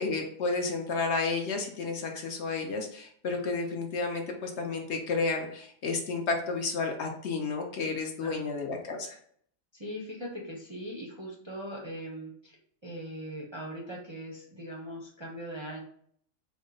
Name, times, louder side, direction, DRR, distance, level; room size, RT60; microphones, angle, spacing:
voice 1, 0.0-9.2, left 4 dB, 65° left, 2 dB, 0.9 m, -31 dB
voice 2, 9.7-12.6 12.8-15.8, equal, 35° right, -4 dB, 0.5 m, -40 dB
4.3 x 2.1 x 3.8 m, 0.62 s
omnidirectional pair, 1.4 m